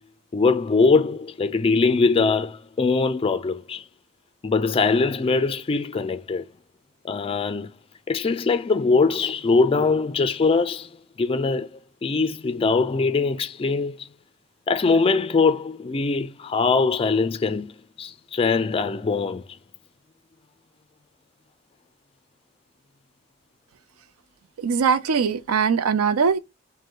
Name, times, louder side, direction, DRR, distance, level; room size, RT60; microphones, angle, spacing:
voice 1, 0.3-3.9 4.4-6.5 7.0-7.7 8.1-14.1 14.7-19.4, left 4 dB, 25° left, 0.3 m, -22 dB
voice 2, 24.6-26.4, right 6 dB, 85° right, 0.5 m, -21 dB
5.1 x 2.1 x 3.7 m
head